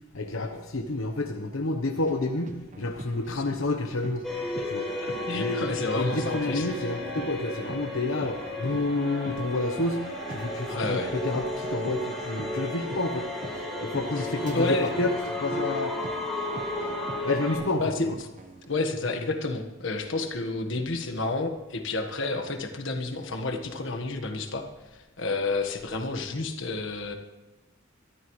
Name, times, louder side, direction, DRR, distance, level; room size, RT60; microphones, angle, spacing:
voice 1, 0.1-4.2 4.7-4.9 5.3-13.3 13.5-15.1 15.4-15.9 16.9-18.2, left 2 dB, 85° left, 3 dB, 1.0 m, -30 dB
sound 1, 2.0-18.7, right 2 dB, 40° right, 1.1 m, -45 dB
sound 2, 4.2-17.5, left 1 dB, ahead, 4.2 m, -34 dB
sound 3, 4.8-17.7, equal, 85° right, 5.8 m, -41 dB
voice 2, 5.0-6.7 10.7-11.1 14.5-14.9 17.6-18.1 18.7-24.6 24.9-27.1, left 2 dB, 65° left, 5 dB, 1.4 m, -30 dB
22.5 x 13.5 x 3.2 m, 1.1 s
head